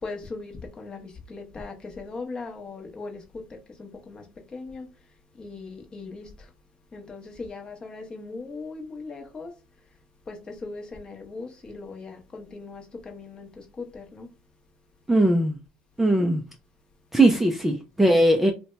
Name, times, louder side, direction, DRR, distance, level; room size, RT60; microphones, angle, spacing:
voice 1, 0.0-4.9 5.4-6.5 6.9-9.5 10.3-14.3, left 3 dB, 25° left, 0.8 m, -39 dB
voice 2, 15.1-15.6 16.0-16.4 17.1-18.5, right 1 dB, 5° right, 0.4 m, -19 dB
2.7 x 2.1 x 3.2 m
supercardioid pair, 95°, 3 cm